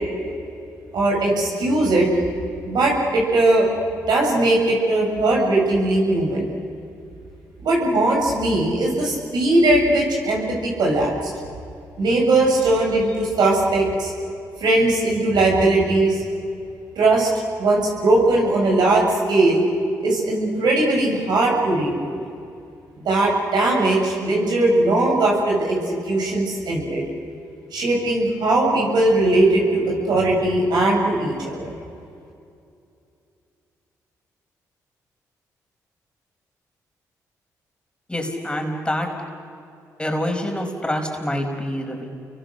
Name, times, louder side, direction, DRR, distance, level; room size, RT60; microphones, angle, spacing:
voice 1, 0.9-2.1 2.6-3.7 4.1-6.5 7.6-11.1 12.0-14.1 14.6-16.2 17.0-17.3 17.6-19.6 20.0-22.1 23.0-27.0 27.7-31.8, right 2 dB, 70° right, -2 dB, 7.7 m, -19 dB
voice 2, 38.1-39.1 40.0-42.1, left 1 dB, 15° left, 2 dB, 5.1 m, -26 dB
30.0 x 23.0 x 6.7 m, 2.5 s
supercardioid pair, 55°, 7 cm